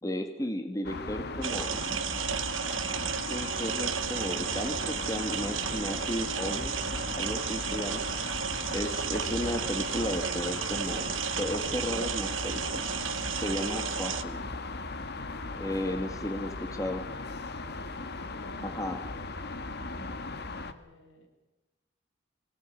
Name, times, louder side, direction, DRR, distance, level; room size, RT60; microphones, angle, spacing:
voice 1, 0.0-2.0 2.7-6.9 7.2-8.1 8.7-12.8 13.3-14.4 15.6-17.0 18.6-19.0, left 1 dB, 15° left, 6 dB, 1.7 m, -34 dB
sound 1, 0.8-20.7, left 3 dB, 55° left, 1.6 m, -37 dB
sound 2, 1.4-14.2, right 8 dB, 80° right, 1.2 m, -33 dB
voice 2, 16.0-16.5 17.7-18.8 19.9-21.3, left 1 dB, 75° left, 4 dB, 6.5 m, -52 dB
24.0 x 18.5 x 9.7 m, 1.1 s
head